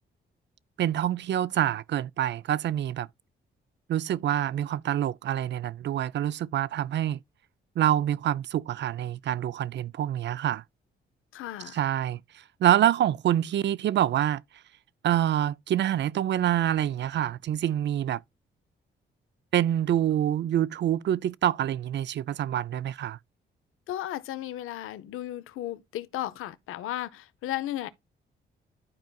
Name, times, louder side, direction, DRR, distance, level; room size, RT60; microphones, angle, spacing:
voice 1, 0.8-3.1 3.9-7.2 7.8-10.6 11.7-12.2 12.6-14.4 15.0-18.2 19.5-23.2, right 11 dB, 60° right, 0.4 m, -26 dB
voice 2, 11.3-11.8 23.9-27.9, left 13 dB, 85° left, 0.6 m, -35 dB
12.0 x 4.6 x 2.3 m
supercardioid pair, 60°, 21 cm